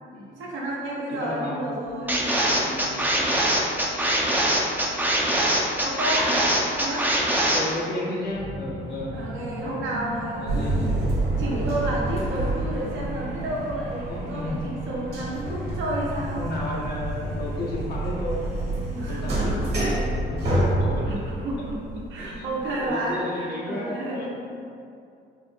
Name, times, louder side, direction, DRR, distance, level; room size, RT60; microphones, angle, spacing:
voice 1, 0.4-2.3 5.8-6.5 6.8-7.1 9.1-10.7 11.4-16.5 18.9-19.8 21.0-21.8 22.1-24.3, right 1 dB, 75° right, -5 dB, 0.9 m, -31 dB
voice 2, 1.1-1.7 2.6-3.1 7.5-9.2 10.4-11.1 14.0-14.6 16.3-18.4 19.1-21.2 22.2-24.3, left 1 dB, 55° left, -4 dB, 0.6 m, -33 dB
sound 1, 2.1-7.6, right 1 dB, 10° right, 0.4 m, -22 dB
sound 2, 8.2-21.7, equal, 35° right, 0.9 m, -37 dB
sound 3, 10.5-22.9, right 1 dB, 55° right, 1.3 m, -28 dB
3.5 x 2.1 x 3.2 m, 2.5 s
cardioid pair, 90°, 20 cm